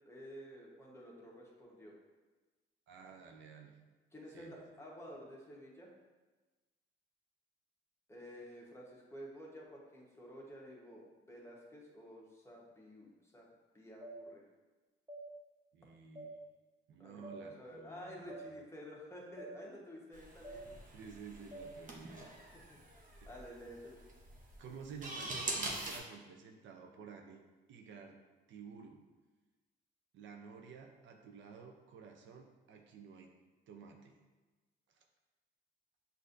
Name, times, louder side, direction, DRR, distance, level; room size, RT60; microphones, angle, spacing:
voice 1, 0.1-1.9 4.1-5.9 8.1-13.5 13.7-14.4 17.0-20.7 22.4-22.9 23.3-24.0, equal, 15° left, -3 dB, 1.1 m, -51 dB
voice 2, 2.9-3.8 4.3-4.6 15.7-16.4 16.9-18.6 20.9-22.3 23.2-23.3 24.6-27.4 27.7-28.2 28.5-29.0 30.1-33.3 33.7-34.2 34.9-35.0, right 6 dB, 70° right, 2 dB, 0.5 m, -52 dB
sound 1, 14.0-14.2 15.1-15.2 16.1-16.3 17.2-17.4 18.3-18.4 19.4-19.5 20.4-20.6 21.5-21.7, right 2 dB, 15° right, 0.9 m, -47 dB
sound 2, 20.1-26.0, right 2 dB, 40° right, 0.8 m, -44 dB
6.2 x 2.6 x 2.6 m, 1.2 s
cardioid pair, 90°, 20 cm